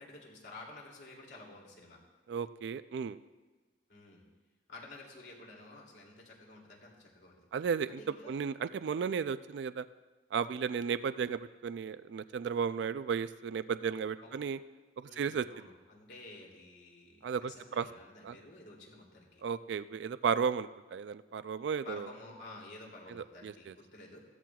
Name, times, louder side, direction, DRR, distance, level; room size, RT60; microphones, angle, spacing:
voice 1, 0.0-2.0 3.9-4.2 4.7-7.4 8.0-8.4 14.2-14.4 15.0-19.4 21.8-24.2, left 2 dB, 65° left, -2 dB, 2.8 m, -51 dB
voice 2, 2.3-3.2 7.5-8.0 8.3-9.9 10.3-14.6 15.0-15.5 17.2-17.9 18.2-18.3 19.4-22.1 23.1-23.7, right 6 dB, 70° right, 14 dB, 0.3 m, -34 dB
16.5 x 13.5 x 2.4 m, 1.3 s
head